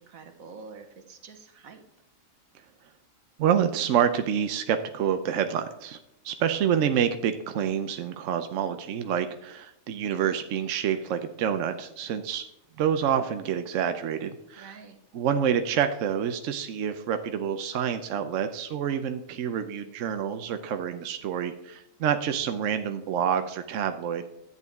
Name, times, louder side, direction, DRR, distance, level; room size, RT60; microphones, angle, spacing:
voice 1, 0.0-1.8 14.6-15.0, right 4 dB, 90° right, 6 dB, 1.6 m, -46 dB
voice 2, 3.4-6.0 6.2-12.5 12.8-14.7 15.1-24.3, right 8 dB, 70° right, 8 dB, 1.0 m, -27 dB
11.0 x 8.5 x 3.5 m, 0.89 s
omnidirectional pair, 1.4 m